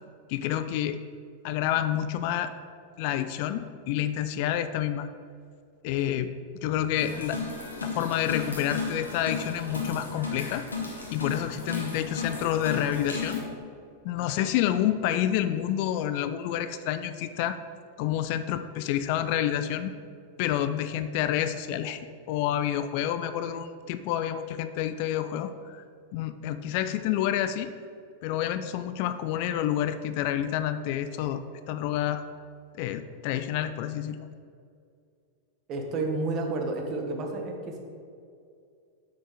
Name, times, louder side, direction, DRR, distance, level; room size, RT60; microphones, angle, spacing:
voice 1, 0.3-1.0 1.4-2.5 3.0-5.1 5.8-6.3 6.6-7.4 7.8-10.6 11.1-13.4 14.0-17.6 18.0-19.9 20.4-22.0 22.3-25.8 26.1-27.7 28.2-32.2 32.8-34.2, left 11 dB, 45° left, 11 dB, 0.3 m, -28 dB
sound 1, 7.0-13.4, left 3 dB, 75° left, 1.4 m, -35 dB
voice 2, 35.7-37.8, right 2 dB, 35° right, 2 dB, 1.2 m, -30 dB
6.9 x 6.2 x 4.8 m, 2.3 s
figure-of-eight pair, 90°, 0 cm